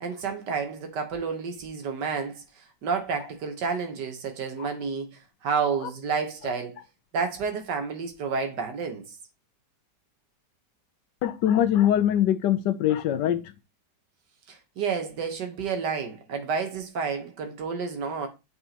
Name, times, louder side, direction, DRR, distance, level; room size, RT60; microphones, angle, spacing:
voice 1, 0.0-2.4 2.8-5.1 5.4-6.7 7.1-9.1 14.5-18.3, right 5 dB, 75° right, 1.7 m, -30 dB
voice 2, 11.2-13.5, left 11 dB, 80° left, 1.3 m, -23 dB
8.1 x 4.4 x 2.9 m
omnidirectional pair, 1.9 m